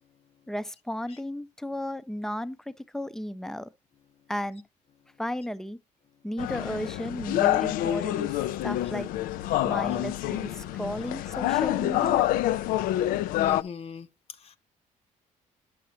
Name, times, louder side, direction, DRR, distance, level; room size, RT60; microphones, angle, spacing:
voice 1, 0.5-3.7 4.3-4.6 5.2-5.8 6.2-8.4 8.6-9.1 9.6-12.3, equal, 5° left, 0.4 m, -34 dB
sound 1, 6.4-13.6, left 14 dB, 85° left, 0.4 m, -27 dB
voice 2, 13.4-14.6, left 6 dB, 45° left, 0.6 m, -40 dB
8.4 x 6.9 x 2.8 m
cardioid pair, 100°, 14 cm